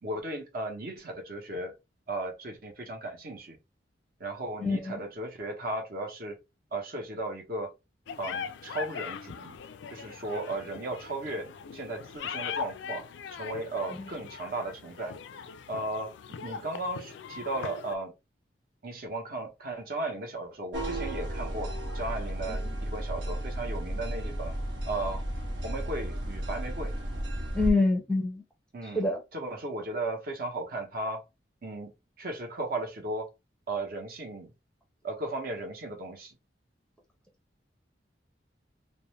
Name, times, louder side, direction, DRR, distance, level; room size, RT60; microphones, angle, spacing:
voice 1, 0.0-1.7 2.1-3.6 4.2-6.4 6.7-7.7 8.2-9.6 9.9-15.1 15.7-18.1 18.8-24.5 24.9-25.2 25.6-26.9 28.7-29.0 29.3-31.2 31.6-31.9 32.2-33.3 33.7-34.5 35.0-36.3, right 2 dB, 55° right, 0.8 m, -36 dB
voice 2, 4.6-5.0 14.0-14.1 22.5-22.8 27.5-28.4 28.9-29.2, left 2 dB, 5° left, 0.6 m, -27 dB
sound 1, 8.1-18.0, left 7 dB, 80° left, 0.3 m, -40 dB
sound 2, 20.7-27.7, right 1 dB, 90° right, 0.9 m, -33 dB
2.5 x 2.1 x 3.0 m
head